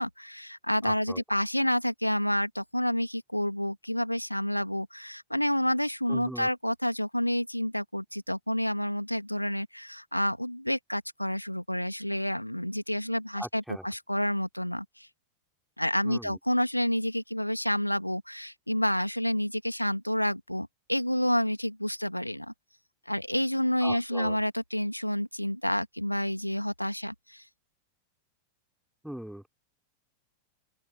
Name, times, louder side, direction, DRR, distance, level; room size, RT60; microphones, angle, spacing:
voice 1, 0.0-15.1 15.8-22.5 23.1-27.4, equal, 90° left, 2.1 m, -29 dB
voice 2, 0.8-1.2 6.1-6.5 13.4-13.9 16.0-16.4 23.8-24.4 29.0-29.5, equal, ahead, 3.6 m, -40 dB
open air
figure-of-eight pair, 90°, 0 cm